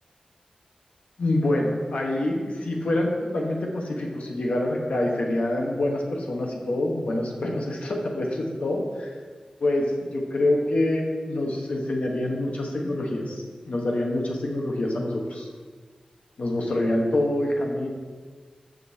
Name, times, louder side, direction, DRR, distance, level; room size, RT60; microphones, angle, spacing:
voice 1, 1.2-8.8 9.6-15.5 16.4-17.9, left 1 dB, 80° left, 0 dB, 1.2 m, -26 dB
13.5 x 5.3 x 2.8 m, 1.6 s
wide cardioid pair, 85°, 2 cm